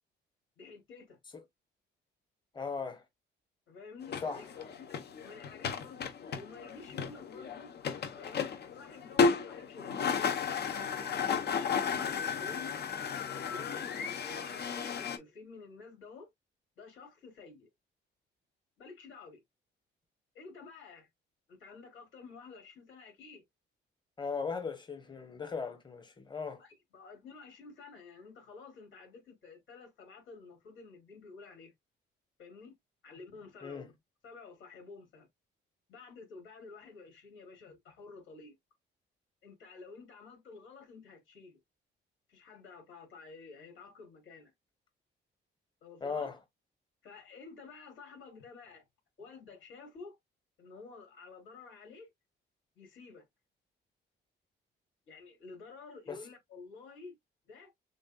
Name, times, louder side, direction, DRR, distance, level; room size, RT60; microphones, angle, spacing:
voice 1, 0.6-1.2 3.7-7.7 8.2-11.9 12.3-12.8 13.3-16.3 16.8-17.7 18.8-19.4 20.3-21.1 21.5-23.4 26.6-31.7 32.4-32.7 33.0-34.0 34.2-35.3 35.9-38.6 39.4-41.6 42.3-44.5 45.8-46.3 47.0-48.9 49.2-50.2 50.6-52.1 52.8-53.2 55.1-57.2 57.5-57.7, left 4 dB, 75° left, 3.4 m, -51 dB
voice 2, 2.5-3.0 4.2-4.7 24.2-26.6 33.6-33.9 46.0-46.4 56.1-56.2, left 5 dB, 20° left, 1.2 m, -38 dB
sound 1, 4.0-15.2, left 5 dB, 55° left, 1.0 m, -34 dB
6.4 x 2.7 x 2.3 m
cardioid pair, 90°, 20 cm